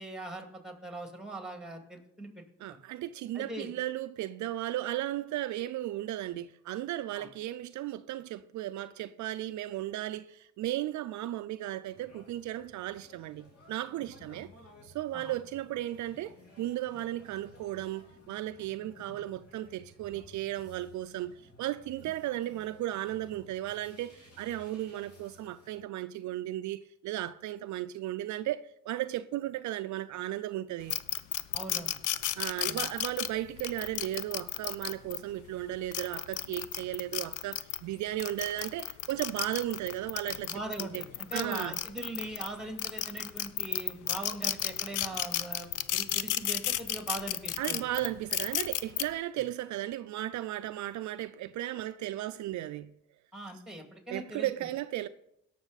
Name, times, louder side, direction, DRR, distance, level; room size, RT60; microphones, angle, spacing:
voice 1, 0.0-2.4 3.3-3.7 7.1-7.3 15.1-15.3 31.5-31.9 32.6-32.9 40.5-47.9 53.3-54.5, right 2 dB, ahead, 2.3 m, -41 dB
voice 2, 2.6-14.5 14.8-31.0 32.4-41.0 41.3-41.8 47.6-52.9 54.1-55.1, right 14 dB, 70° right, 0.4 m, -35 dB
sound 1, 11.9-25.8, left 1 dB, 50° left, 3.6 m, -56 dB
sound 2, 30.9-35.2 35.8-37.8 38.2-42.5 42.8-49.0, left 13 dB, 85° left, 0.6 m, -32 dB
17.5 x 6.2 x 4.0 m
cardioid pair, 90°, 30 cm